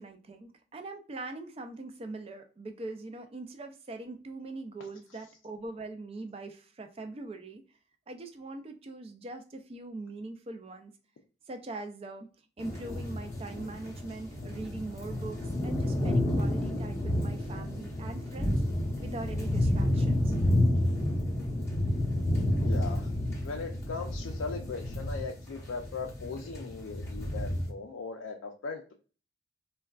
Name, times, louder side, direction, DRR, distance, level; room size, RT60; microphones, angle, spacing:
voice 1, 0.0-7.6 8.1-10.9 11.5-12.3 12.6-18.6 19.0-20.4, right 2 dB, 30° right, 6 dB, 0.3 m, -42 dB
sound 1, 12.6-27.7, left 1 dB, 15° left, 0.6 m, -30 dB
voice 2, 22.6-23.1 23.4-28.9, left 4 dB, 85° left, 2 dB, 0.4 m, -39 dB
3.4 x 2.2 x 2.3 m, 0.37 s
head